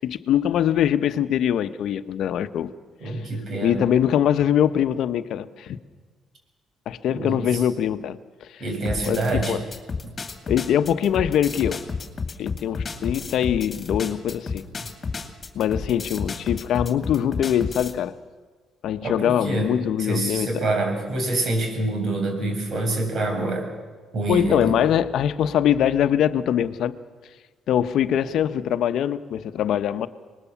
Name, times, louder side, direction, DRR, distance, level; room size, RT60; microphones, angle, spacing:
voice 1, 0.0-2.7 3.0-3.2 3.6-5.8 6.9-8.6 9.1-9.2 9.5-9.7 10.5-11.8 12.4-14.6 15.5-18.2 18.8-20.7 24.3-27.0 27.7-30.1, left 10 dB, 70° left, 0.9 m, -23 dB
voice 2, 3.0-3.8 7.1-7.6 8.6-9.6 10.0-10.1 14.8-14.9 19.0-19.7 20.0-23.7 24.1-24.7, right 2 dB, 55° right, 6.4 m, -26 dB
sound 1, 8.9-18.0, left 4 dB, 35° left, 2.5 m, -31 dB
25.0 x 20.0 x 7.1 m
cardioid pair, 80°, 0 cm